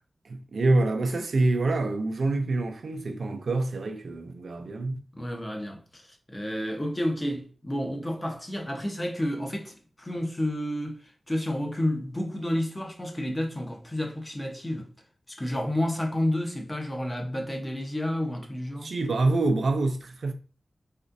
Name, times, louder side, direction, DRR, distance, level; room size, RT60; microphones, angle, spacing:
voice 1, 0.2-5.0 18.8-20.3, right 2 dB, 75° right, 0.5 m, -26 dB
voice 2, 5.1-14.9 15.3-18.9, left 1 dB, 20° left, 0.9 m, -30 dB
4.1 x 2.5 x 2.6 m
cardioid pair, 50°, 0 cm